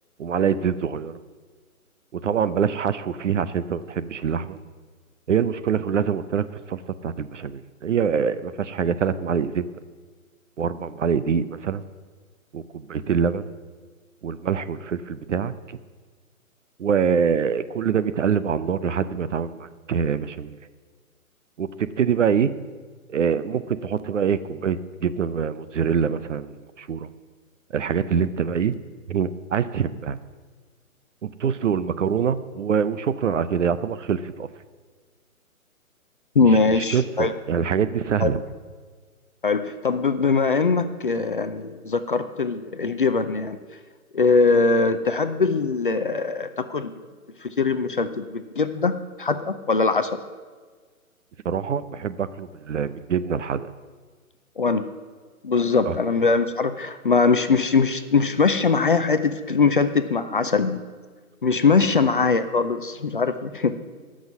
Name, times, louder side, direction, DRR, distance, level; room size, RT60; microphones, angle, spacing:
voice 1, 0.2-1.2 2.1-4.6 5.3-9.7 10.6-11.8 12.5-13.4 14.2-15.8 16.8-20.5 21.6-22.6 23.1-26.5 26.8-27.1 27.7-28.8 29.1-30.2 31.2-34.5 36.4-38.4 51.4-53.7 55.9-56.0, right 7 dB, 60° right, 14 dB, 0.7 m, -25 dB
voice 2, 36.4-37.3 38.2-38.3 39.4-43.6 44.1-46.9 47.6-50.1 54.6-54.9 55.4-60.8 61.4-63.7, left 4 dB, 40° left, 10 dB, 0.5 m, -21 dB
15.0 x 6.3 x 7.1 m, 1.5 s
hypercardioid pair, 160°, 43 cm